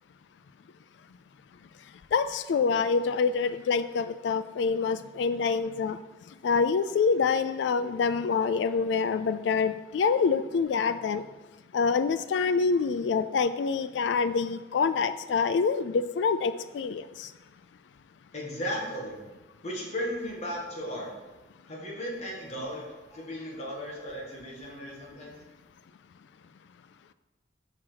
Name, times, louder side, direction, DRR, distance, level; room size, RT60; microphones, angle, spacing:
voice 1, 2.1-6.0 6.4-11.2 11.7-17.3, left 5 dB, 85° left, 12 dB, 0.3 m, -26 dB
voice 2, 18.3-19.2 19.6-21.1 21.7-25.3, equal, 40° left, -2 dB, 1.8 m, -36 dB
6.2 x 5.8 x 4.6 m, 1.2 s
head